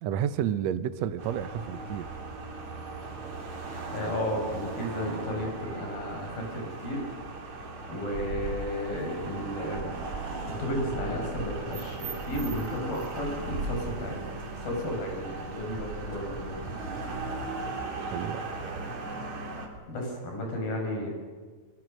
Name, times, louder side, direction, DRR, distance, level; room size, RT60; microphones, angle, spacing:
voice 1, 0.0-2.1 18.0-18.5, right 9 dB, 70° right, 11 dB, 1.7 m, -31 dB
sound 1, 1.2-19.7, right 3 dB, 55° right, 4.0 m, -37 dB
voice 2, 3.9-7.0 7.9-9.9 10.4-14.4 14.6-16.6 19.9-21.1, left 1 dB, 85° left, 1 dB, 7.4 m, -33 dB
24.5 x 24.5 x 6.5 m, 1.5 s
omnidirectional pair, 4.0 m